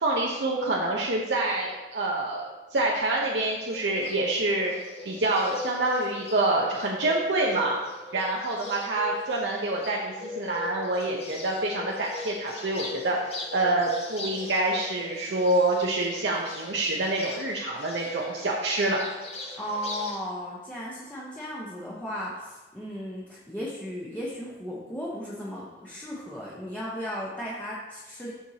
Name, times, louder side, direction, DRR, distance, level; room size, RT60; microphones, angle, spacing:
voice 1, 0.0-4.7 5.0-7.8 8.1-19.0, right 2 dB, 75° right, -3 dB, 0.9 m, -27 dB
Bird, 3.7-20.2, left 3 dB, 35° left, 1.4 m, -40 dB
voice 2, 19.6-28.3, equal, 10° left, -7 dB, 1.1 m, -35 dB
13.0 x 4.6 x 2.9 m, 1.2 s
head